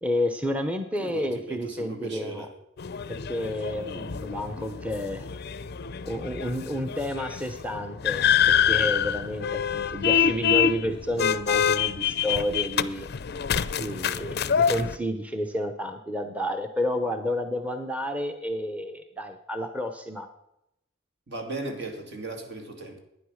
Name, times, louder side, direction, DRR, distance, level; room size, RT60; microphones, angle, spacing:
voice 1, 0.0-2.5 3.1-5.3 6.0-13.1 13.8-20.3, left 1 dB, 5° right, 7 dB, 0.8 m, -30 dB
voice 2, 1.0-2.5 21.3-23.0, right 2 dB, 60° right, 4 dB, 2.3 m, -37 dB
sound 1, 2.8-15.0, left 8 dB, 55° left, 0.5 m, -26 dB
11.5 x 9.6 x 6.4 m, 0.84 s
head